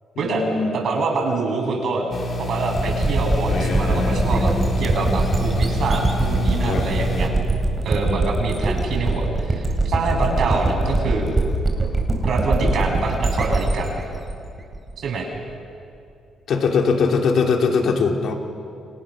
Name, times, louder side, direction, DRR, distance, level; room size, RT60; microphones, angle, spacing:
voice 1, 0.1-0.8 3.5-4.4 6.7-6.8 16.5-18.3, left 5 dB, 65° left, 2 dB, 3.1 m, -21 dB
voice 2, 0.7-2.1 2.4-4.5 4.8-7.3 7.8-11.3 12.2-14.0 15.0-15.3, right 3 dB, 65° right, 1 dB, 7.1 m, -25 dB
sound 1, 2.1-7.3, left 2 dB, 45° left, 3.3 m, -27 dB
sound 2, 2.7-15.4, right 2 dB, 25° right, 4.3 m, -23 dB
sound 3, 3.3-9.0, equal, 5° right, 2.6 m, -32 dB
29.5 x 27.0 x 6.5 m, 2.5 s
cardioid pair, 90°, 0 cm